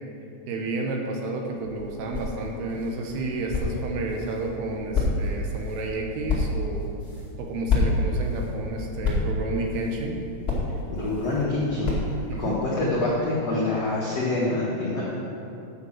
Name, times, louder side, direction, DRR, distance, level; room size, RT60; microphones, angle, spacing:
voice 1, 0.5-6.9 7.4-10.2 12.3-12.6, right 2 dB, 75° right, 1 dB, 2.5 m, -31 dB
sound 1, 1.6-12.5, left 3 dB, 40° left, 0.8 m, -29 dB
voice 2, 10.9-12.0 12.4-15.0, left 2 dB, 85° left, -7 dB, 1.4 m, -26 dB
9.3 x 6.6 x 7.2 m, 2.7 s
omnidirectional pair, 5.3 m